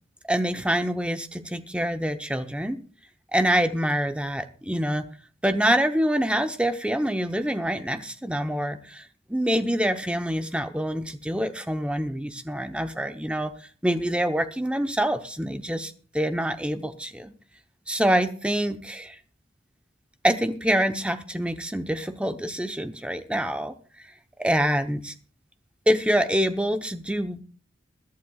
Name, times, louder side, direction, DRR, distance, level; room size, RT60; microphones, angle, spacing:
voice 1, 0.3-2.8 3.3-5.1 5.4-13.5 13.8-17.3 17.9-19.2 20.2-23.7 24.4-25.1 25.9-27.4, equal, 5° right, 8 dB, 0.8 m, -26 dB
22.0 x 11.5 x 2.4 m, 0.39 s
head